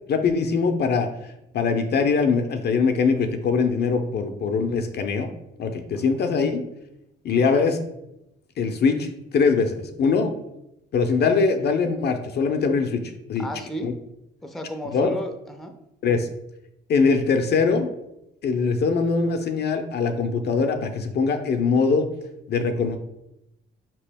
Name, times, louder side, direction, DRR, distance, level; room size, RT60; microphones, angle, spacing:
voice 1, 0.1-5.3 5.6-6.6 7.2-7.8 8.6-10.3 10.9-13.0 13.3-13.5 13.8-13.9 14.9-15.2 16.0-16.3 16.9-17.9 18.4-22.1 22.5-23.0, left 4 dB, 55° left, 6 dB, 0.5 m, -22 dB
voice 2, 5.9-6.4 13.4-14.0 14.4-15.8, equal, ahead, 5 dB, 0.5 m, -34 dB
4.8 x 2.9 x 3.4 m, 0.85 s
cardioid pair, 90°, 20 cm